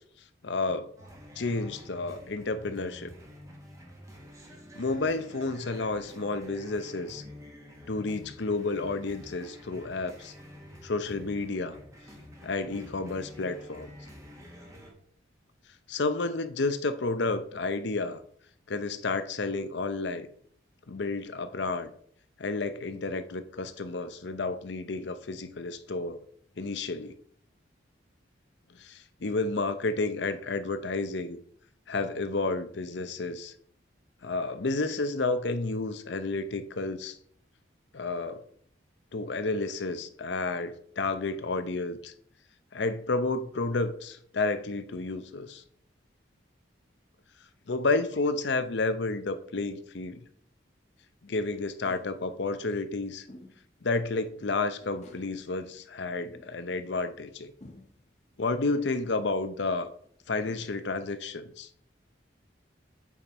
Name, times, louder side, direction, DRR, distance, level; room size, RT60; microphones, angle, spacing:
voice 1, 0.4-0.9 1.4-3.1 4.8-7.2 7.9-10.3 10.8-11.8 12.4-13.9 15.9-18.2 18.7-20.3 20.9-21.9 22.4-26.2 26.6-27.2 28.7-31.4 31.9-33.5 34.2-37.2 37.9-38.4 39.1-42.1 42.7-45.6 47.7-50.2 51.2-53.3 53.8-57.5 58.4-59.9 60.3-61.7, left 3 dB, 65° left, 0.7 m, -31 dB
sound 1, 1.0-14.9, equal, 15° right, 1.3 m, -49 dB
sound 2, 51.0-51.1 51.8-52.2 53.3-53.7 54.1-54.2 54.8-55.4 56.3-56.9 57.6-58.1 59.0-59.5 60.0-60.1 60.4-60.9, left 1 dB, 35° left, 1.1 m, -52 dB
8.5 x 5.2 x 4.1 m
head